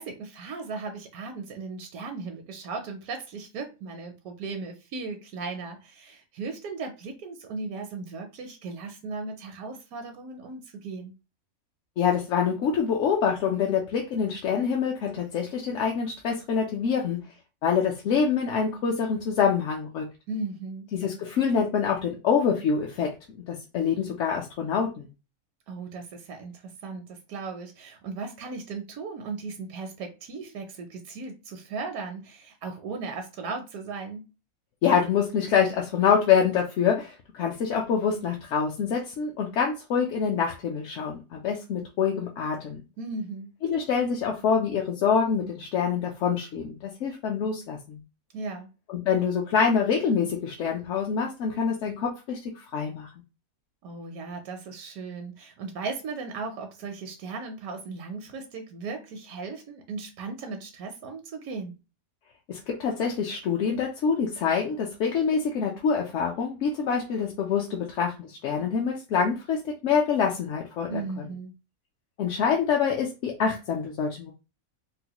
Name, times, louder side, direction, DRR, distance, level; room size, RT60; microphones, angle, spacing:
voice 1, 0.0-11.1 20.3-20.9 25.7-34.2 43.0-43.5 48.3-48.7 53.8-61.7 70.9-71.5, right 4 dB, 80° right, 1.0 m, -37 dB
voice 2, 12.0-17.2 17.6-20.1 20.9-25.1 34.8-42.8 43.7-48.0 48.9-53.1 62.5-71.1 72.2-74.3, left 6 dB, 65° left, 0.8 m, -26 dB
3.8 x 2.1 x 2.8 m
omnidirectional pair, 1.5 m